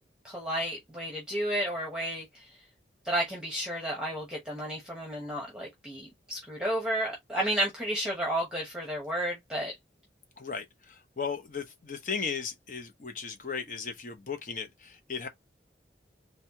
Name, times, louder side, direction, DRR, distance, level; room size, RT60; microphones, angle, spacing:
voice 1, 0.2-2.5 3.0-9.7, right 1 dB, 5° right, 0.9 m, -32 dB
voice 2, 10.4-15.3, left 5 dB, 45° left, 0.8 m, -36 dB
4.1 x 2.2 x 2.8 m
head